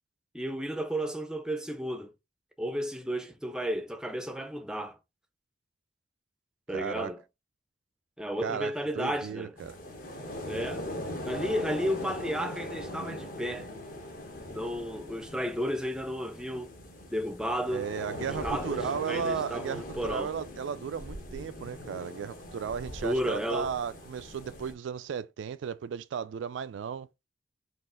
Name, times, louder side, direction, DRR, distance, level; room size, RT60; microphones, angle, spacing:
voice 1, 0.3-2.1 2.6-5.0 6.7-7.2 8.2-9.5 10.5-10.8 11.2-13.7 14.5-16.7 17.1-17.9 18.2-20.3 23.0-23.7, equal, 5° right, 0.4 m, -33 dB
voice 2, 6.7-7.1 8.4-9.8 17.7-27.1, right 7 dB, 80° right, 0.3 m, -35 dB
sound 1, 9.6-24.7, left 1 dB, 45° left, 1.0 m, -40 dB
4.1 x 2.4 x 3.8 m
head